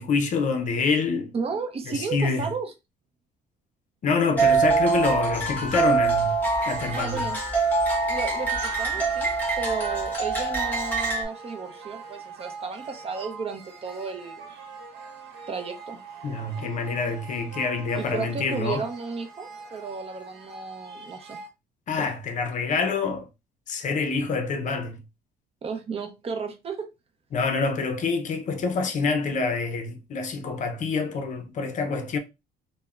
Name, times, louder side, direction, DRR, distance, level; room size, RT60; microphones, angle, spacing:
voice 1, 0.0-1.3 1.9-2.5 4.0-6.4 6.7-7.3 16.2-18.8 21.9-23.3 23.7-25.0 27.3-32.2, left 4 dB, 45° left, 0.6 m, -26 dB
voice 2, 1.3-2.7 6.9-7.4 8.1-9.3 9.6-14.5 15.5-16.0 18.0-21.4 25.6-26.9, right 5 dB, 35° right, 0.6 m, -33 dB
sound 1, 4.4-11.3, right 4 dB, 10° left, 1.3 m, -24 dB
sound 2, 6.5-21.5, right 5 dB, 85° right, 1.0 m, -43 dB
3.3 x 2.1 x 2.3 m
cardioid pair, 110°, 17 cm